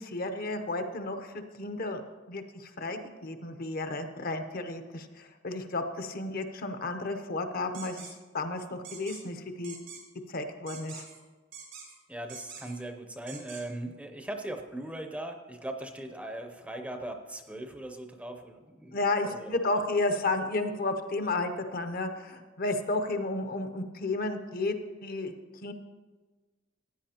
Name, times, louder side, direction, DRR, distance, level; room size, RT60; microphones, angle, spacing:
voice 1, 0.0-2.0 2.3-8.1 8.3-9.8 10.3-11.0 18.9-24.8 25.0-25.3 25.6-25.7, left 2 dB, 50° left, 7 dB, 0.7 m, -32 dB
sound 1, 7.7-8.1 8.8-9.2 9.6-10.0 10.7-11.2 11.5-11.9 12.3-12.8 13.3-13.6, right 6 dB, 85° right, 3.5 m, -45 dB
voice 2, 12.1-19.8, right 1 dB, 5° right, 5 dB, 0.6 m, -39 dB
15.5 x 9.2 x 2.9 m, 1.3 s
head